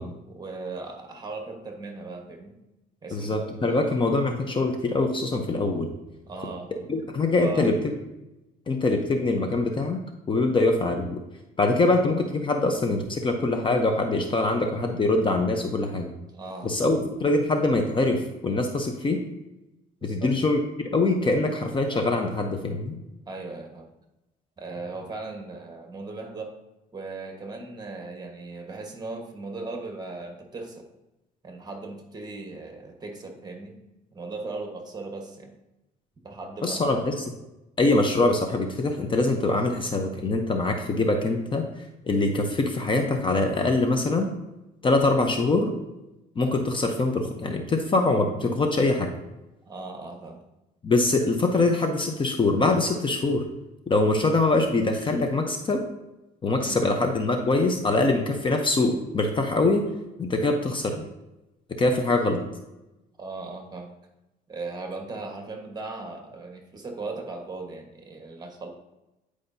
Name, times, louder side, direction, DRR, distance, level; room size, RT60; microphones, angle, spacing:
voice 1, 0.0-2.5 3.0-3.8 6.3-6.9 7.4-7.7 16.3-16.9 20.0-20.3 23.3-23.9 24.6-26.5 26.9-30.9 31.4-33.7 34.1-35.6 36.2-36.9 49.6-50.4 56.7-56.9 63.2-63.9 64.5-68.7, right 3 dB, 25° right, 3 dB, 1.4 m, -38 dB
voice 2, 3.1-5.9 6.9-8.0 8.7-10.0 10.3-11.2 11.6-16.1 16.6-19.2 20.0-23.0 36.6-37.2 37.8-41.6 42.1-44.3 44.8-45.7 46.4-49.1 50.8-53.4 53.9-55.8 56.4-59.8 60.2-61.0 61.8-62.4, left 2 dB, 30° left, 4 dB, 0.8 m, -23 dB
9.7 x 4.9 x 2.7 m, 0.96 s
cardioid pair, 110°, 17 cm